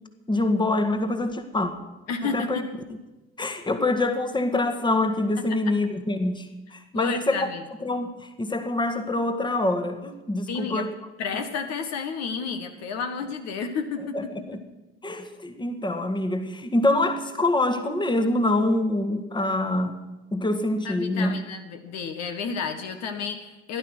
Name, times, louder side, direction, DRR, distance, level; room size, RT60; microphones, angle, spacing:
voice 1, 0.3-1.7 2.2-2.6 3.4-7.5 7.8-10.9 14.1-14.6 15.0-20.0 20.3-21.3, left 2 dB, 15° left, 7 dB, 1.7 m, -25 dB
voice 2, 2.1-2.7 5.4-5.7 6.9-7.6 10.5-10.9 11.2-14.6 20.8-23.8, left 5 dB, 55° left, 6 dB, 1.6 m, -31 dB
15.5 x 11.5 x 6.3 m, 1.1 s
figure-of-eight pair, 55°, 31 cm